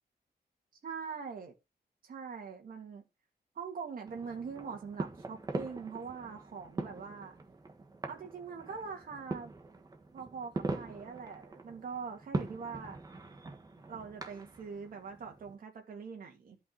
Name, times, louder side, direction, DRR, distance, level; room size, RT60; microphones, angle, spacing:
voice 1, 0.8-1.5 2.0-3.0 3.6-7.3 8.1-9.5 10.1-13.0 13.9-16.6, right 5 dB, 60° right, 2.6 m, -43 dB
sound 1, 4.0-15.6, right 3 dB, 25° right, 1.4 m, -42 dB
12.0 x 5.5 x 4.0 m
wide cardioid pair, 175°, 17 cm